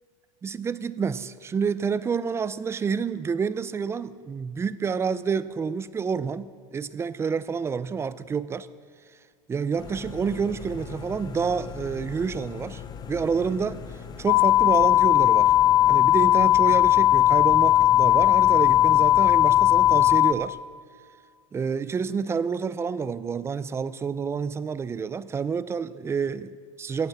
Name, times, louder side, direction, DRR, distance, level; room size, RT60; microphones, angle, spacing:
voice 1, 0.4-8.7 9.5-12.8 13.1-13.8 14.2-15.5 15.9-20.6 21.5-27.1, right 6 dB, 15° right, 16 dB, 0.4 m, -28 dB
sound 1, 9.8-20.2, left 5 dB, 20° left, 0.9 m, -39 dB
sound 2, 14.3-20.3, left 13 dB, 65° left, 0.8 m, -18 dB
16.0 x 10.0 x 7.5 m, 2.1 s
supercardioid pair, 135°, 18 cm